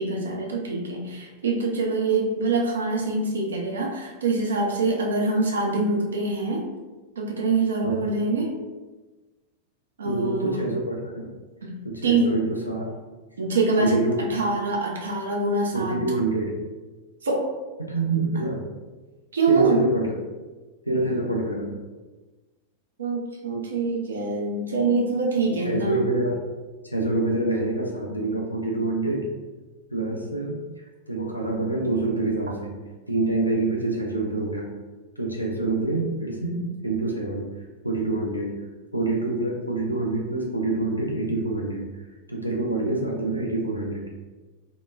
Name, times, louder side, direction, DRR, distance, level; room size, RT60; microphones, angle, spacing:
voice 1, 0.0-6.6 7.2-8.5 10.0-10.6 11.6-11.7 12.0-12.3 13.4-14.0 14.3-16.0 17.2-17.5 19.3-19.8 23.0-26.0, right 3 dB, 70° right, -1 dB, 0.5 m, -24 dB
voice 2, 10.0-11.3 11.8-12.9 13.8-14.2 15.7-16.6 17.9-18.7 19.5-20.1 20.9-21.8 25.6-26.4 26.8-29.3 29.9-30.6 31.1-32.8 33.1-34.8 35.2-37.5 37.8-38.6 38.9-41.9 42.3-44.1, right 2 dB, 90° left, -1 dB, 0.4 m, -26 dB
2.9 x 2.1 x 2.2 m, 1.2 s
figure-of-eight pair, 90°, 0 cm